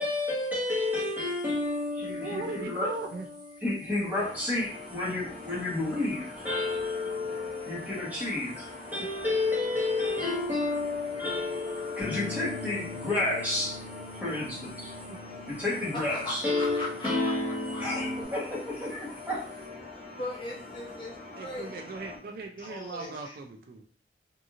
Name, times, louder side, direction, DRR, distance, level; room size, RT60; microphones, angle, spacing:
voice 1, 0.0-2.9 3.3-14.9 15.5-19.5, left 2 dB, 10° right, -6 dB, 1.1 m, -30 dB
voice 2, 2.2-3.3 15.1-15.2 21.4-23.8, right 3 dB, 55° right, 2 dB, 0.3 m, -38 dB
sound 1, 4.1-22.2, left 2 dB, 40° right, 1.3 m, -44 dB
Bass guitar, 12.0-18.3, left 4 dB, 60° left, 0.4 m, -44 dB
voice 3, 15.9-17.3 17.7-18.1 19.9-21.7 22.6-23.3, left 2 dB, 25° left, -3 dB, 0.7 m, -39 dB
2.8 x 2.6 x 2.4 m, 0.43 s
head